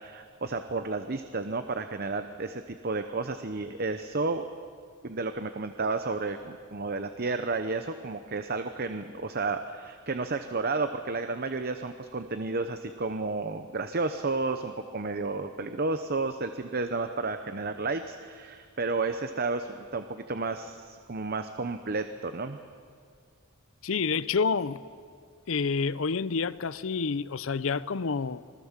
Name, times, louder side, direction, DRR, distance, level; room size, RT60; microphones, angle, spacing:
voice 1, 0.0-4.5 5.0-22.6, right 3 dB, 45° right, 0.8 m, -32 dB
voice 2, 23.8-24.8 25.5-28.4, left 5 dB, 65° left, 0.6 m, -28 dB
27.0 x 20.5 x 7.4 m
head